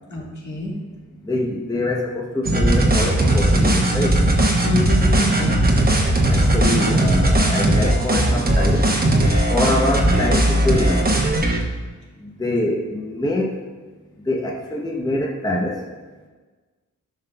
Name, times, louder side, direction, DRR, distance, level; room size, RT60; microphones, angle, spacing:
voice 1, 0.1-0.7 4.6-5.6, left 2 dB, 65° left, -4 dB, 2.0 m, -26 dB
voice 2, 1.2-4.2 6.3-8.9 9.5-11.1 12.2-13.5 14.3-15.7, left 1 dB, 10° left, -1 dB, 0.8 m, -24 dB
sound 1, 2.4-11.6, right 1 dB, 30° right, 1.0 m, -18 dB
10.5 x 5.4 x 2.3 m, 1.3 s
wide cardioid pair, 85°, 32 cm